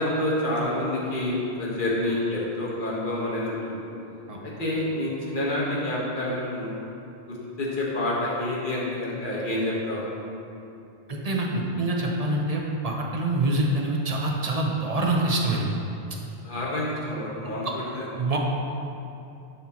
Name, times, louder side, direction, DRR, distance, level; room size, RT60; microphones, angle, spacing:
voice 1, 0.0-3.8 4.4-6.8 7.3-10.0 16.4-18.1, left 1 dB, 55° left, -5 dB, 1.4 m, -28 dB
voice 2, 11.1-15.7 18.2-18.4, right 2 dB, 40° right, -1 dB, 0.8 m, -25 dB
11.0 x 4.3 x 2.9 m, 2.7 s
omnidirectional pair, 1.0 m